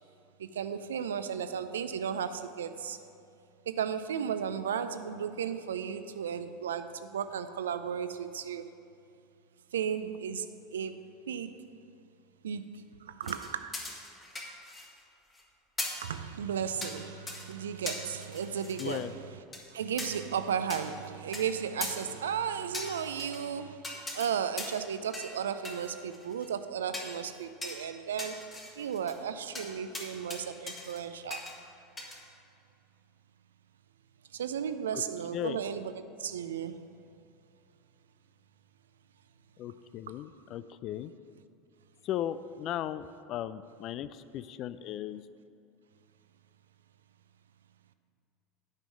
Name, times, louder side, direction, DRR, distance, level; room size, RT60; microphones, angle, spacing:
voice 1, 0.4-3.0 3.7-8.7 9.7-10.4 10.7-11.5 12.4-12.7 13.2-13.8 16.0-19.4 19.7-23.8 24.1-28.4 28.8-31.4 34.3-36.8, right 8 dB, 75° right, 11 dB, 0.4 m, -34 dB
sound 1, 13.2-15.0 15.3-15.4 15.8-16.1 16.8-17.0 17.3-17.5 17.9-19.0 19.5-19.6 20.0-20.1 20.7-20.8 21.3-21.4 21.8-21.9 22.7-23.4 23.8-24.3 24.6-24.8 25.1-25.4 25.7-26.5 26.9-27.1 27.6-27.8 28.2-29.2 29.6-29.7 29.9-30.4 30.7-31.0 31.3-31.5 32.0-32.2, left 2 dB, 20° left, 2.0 m, -39 dB
voice 2, 18.8-19.1 34.9-35.0 35.3-35.6 39.6-41.1 42.0-45.2, left 11 dB, 50° left, 14 dB, 0.4 m, -36 dB
9.1 x 5.3 x 7.4 m, 2.6 s
hypercardioid pair, 80°, 0 cm